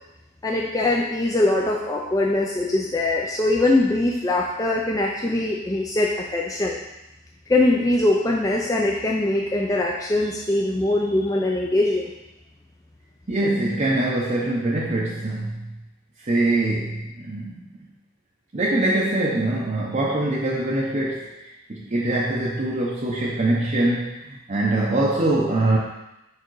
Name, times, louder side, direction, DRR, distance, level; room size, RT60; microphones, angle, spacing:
voice 1, 0.4-6.8 7.5-12.1, left 2 dB, 15° left, -2 dB, 0.4 m, -22 dB
voice 2, 13.3-15.7 16.2-17.5 18.5-21.3 21.7-25.8, right 2 dB, 35° right, -5 dB, 0.6 m, -23 dB
4.9 x 4.7 x 4.6 m, 0.93 s
head